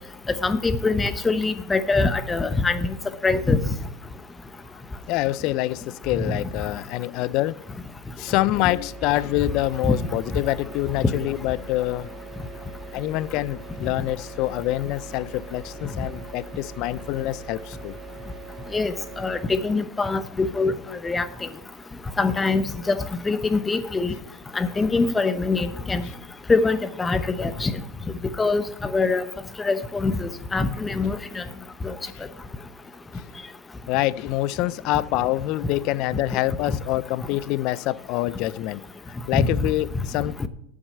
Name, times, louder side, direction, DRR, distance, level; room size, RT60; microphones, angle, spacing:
voice 1, 0.4-2.9 3.2-3.6 9.8-10.0 18.7-20.7 21.0-21.5 22.2-24.1 24.5-26.0 26.5-27.7 28.4-29.2 29.6-31.4 31.8-31.9 39.3-39.5 40.4-40.5, left 3 dB, 15° left, 0.9 m, -23 dB
voice 2, 5.1-7.6 8.2-12.1 12.9-18.0 33.9-40.5, left 16 dB, 50° left, 0.4 m, -26 dB
sound 1, 8.3-19.4, right 3 dB, 35° right, 2.5 m, -41 dB
8.7 x 7.2 x 8.8 m
supercardioid pair, 115°, 0 cm